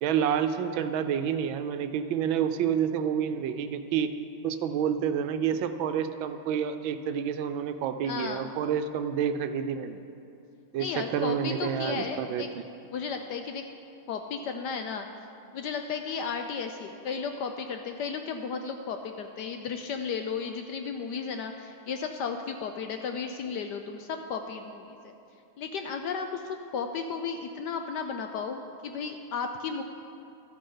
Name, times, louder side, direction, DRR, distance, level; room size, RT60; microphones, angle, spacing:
voice 1, 0.0-4.1 4.4-10.0 10.7-12.6, right 8 dB, 75° right, 9 dB, 1.3 m, -29 dB
voice 2, 8.0-8.5 10.8-12.5 12.9-13.6 14.1-15.1 15.5-25.1 25.6-29.8, left 5 dB, 70° left, 6 dB, 1.0 m, -34 dB
12.5 x 8.8 x 5.5 m, 2.7 s
omnidirectional pair, 2.2 m